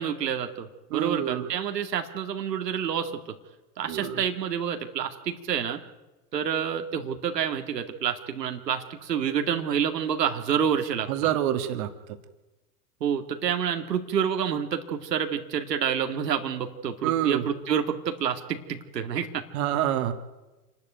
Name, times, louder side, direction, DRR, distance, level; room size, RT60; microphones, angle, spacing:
voice 1, 0.0-3.1 3.8-5.8 6.3-11.1 13.0-19.4, right 8 dB, 85° right, 6 dB, 2.2 m, -28 dB
voice 2, 0.9-1.5 3.9-4.2 11.1-11.9 17.0-17.5 19.5-20.1, right 11 dB, 60° right, 8 dB, 2.1 m, -27 dB
27.0 x 12.0 x 9.2 m, 1.1 s
hypercardioid pair, 105°, 48 cm